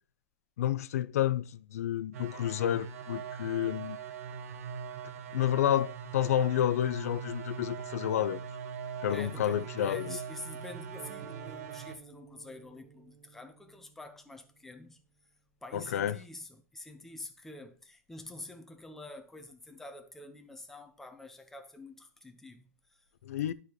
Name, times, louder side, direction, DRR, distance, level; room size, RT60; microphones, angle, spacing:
voice 1, 0.6-4.0 5.3-8.4 9.0-10.2 15.7-16.2 23.2-23.5, left 11 dB, 70° left, 0.5 m, -30 dB
sound 1, 2.1-12.0, right 7 dB, 65° right, 1.0 m, -42 dB
voice 2, 9.1-15.0 15.6-23.0, left 2 dB, 5° left, 0.7 m, -47 dB
sound 2, 10.9-14.9, right 7 dB, 10° right, 1.4 m, -54 dB
11.5 x 4.8 x 3.0 m
hypercardioid pair, 155°, 8 cm